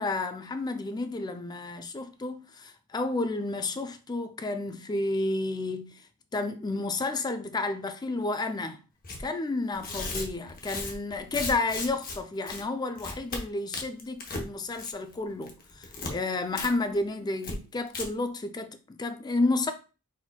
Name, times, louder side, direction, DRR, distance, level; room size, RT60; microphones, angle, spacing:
voice 1, 0.0-5.9 6.3-8.8 9.2-19.7, left 2 dB, 20° left, 0.4 m, -31 dB
Tearing, 9.0-9.2 9.7-12.2 12.5-12.6 13.0-13.4 13.7-14.5 14.7-15.1 15.4-16.1 16.6-16.7 17.0-17.1 17.4-17.5 17.9-18.0, left 3 dB, 40° left, 0.9 m, -36 dB
4.2 x 4.2 x 2.3 m
head